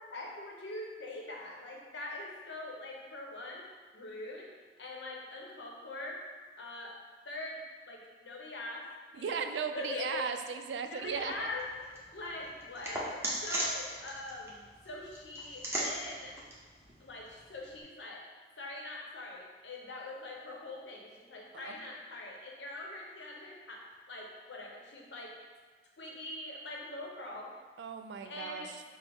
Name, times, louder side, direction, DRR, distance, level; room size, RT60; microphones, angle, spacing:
voice 1, 0.1-3.6 3.9-4.5 4.8-6.2 6.6-6.9 7.3-7.6 7.9-8.8 9.1-9.4 9.7-10.4 10.9-16.4 17.0-18.2 18.6-23.8 24.1-25.4 26.0-27.5 28.2-28.7, left 2 dB, 80° left, -1 dB, 0.8 m, -43 dB
voice 2, 9.1-11.5 21.6-21.8 27.8-28.8, right 6 dB, 75° right, 7 dB, 0.3 m, -37 dB
sound 1, 11.0-17.8, right 1 dB, 15° right, 0.7 m, -40 dB
6.0 x 2.0 x 3.4 m, 1.4 s
head